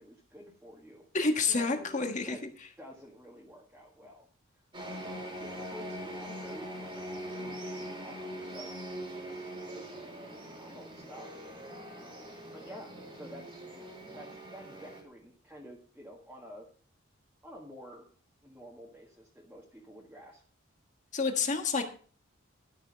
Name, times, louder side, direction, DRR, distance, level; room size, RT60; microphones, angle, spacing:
voice 1, 0.0-1.1 1.4-2.4 2.8-4.3 4.5-8.9 9.1-9.9 10.3-11.4 11.9-16.7 17.4-18.1 18.4-20.4, equal, 10° right, -3 dB, 1.8 m, -51 dB
voice 2, 1.1-2.4 21.1-21.8, left 4 dB, 35° left, 5 dB, 1.5 m, -28 dB
sound 1, 4.7-15.0, equal, 25° right, 2.6 m, -42 dB
12.5 x 6.6 x 5.1 m, 0.42 s
head